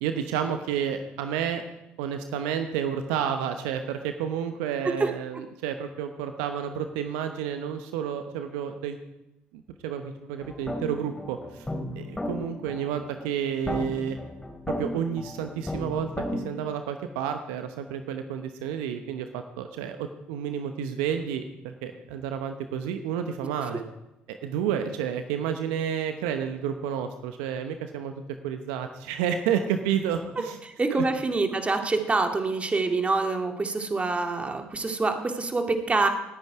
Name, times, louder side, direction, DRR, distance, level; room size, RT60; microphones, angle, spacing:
voice 1, 0.0-1.6 2.0-9.0 9.5-11.7 12.0-14.2 14.8-23.8 24.3-28.1 28.4-30.6 30.9-31.0, right 8 dB, 75° right, 7 dB, 0.9 m, -30 dB
sound 1, 10.4-16.4, left 1 dB, 15° left, 2.6 m, -35 dB
voice 2, 30.6-36.1, right 3 dB, 25° right, 4 dB, 2.2 m, -26 dB
19.0 x 9.5 x 4.9 m, 0.95 s
hypercardioid pair, 55°, 5 cm